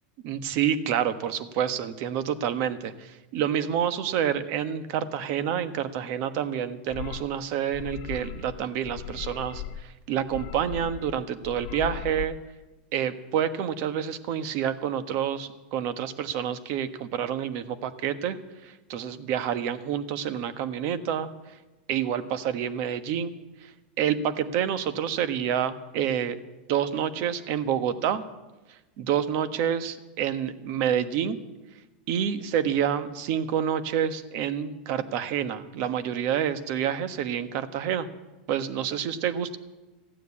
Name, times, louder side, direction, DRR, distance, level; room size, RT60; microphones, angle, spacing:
voice 1, 0.2-12.4 12.9-18.4 18.6-21.3 21.9-23.3 23.6-23.7 24.0-26.4 26.7-28.2 29.0-31.4 32.1-38.1 38.5-39.6, right 9 dB, 50° right, 11 dB, 1.2 m, -28 dB
sound 1, 6.9-7.3 7.7-8.6 8.8-9.8 10.2-11.2 11.4-12.3, left 10 dB, 55° left, 0.9 m, -38 dB
15.5 x 9.1 x 8.6 m, 1.1 s
supercardioid pair, 130°, 5 cm